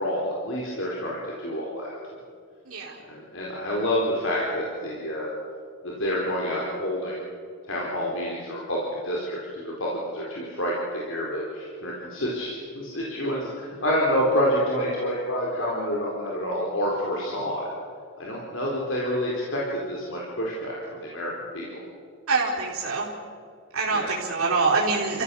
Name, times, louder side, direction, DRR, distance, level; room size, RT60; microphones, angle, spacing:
voice 1, 0.0-2.0 3.0-5.3 5.8-7.1 7.7-17.7 18.2-21.7 23.9-24.1, equal, 65° left, -4 dB, 4.0 m, -28 dB
voice 2, 2.7-3.0 22.3-23.1 23.7-25.2, right 4 dB, 85° right, -4 dB, 4.3 m, -25 dB
29.0 x 15.5 x 7.0 m, 2.1 s
head